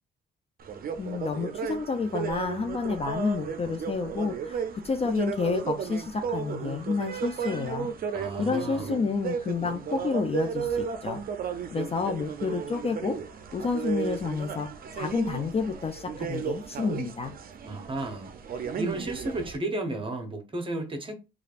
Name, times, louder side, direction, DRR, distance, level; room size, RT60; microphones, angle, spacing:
sound 1, 0.6-19.6, right 6 dB, 50° right, 0.5 m, -34 dB
voice 1, 1.0-7.9 8.4-11.2 11.7-13.2 13.5-17.3, left 4 dB, 30° left, 0.4 m, -30 dB
voice 2, 8.1-8.9 17.6-21.1, right 2 dB, 25° right, 0.9 m, -33 dB
3.2 x 2.4 x 2.4 m
cardioid pair, 90°, 20 cm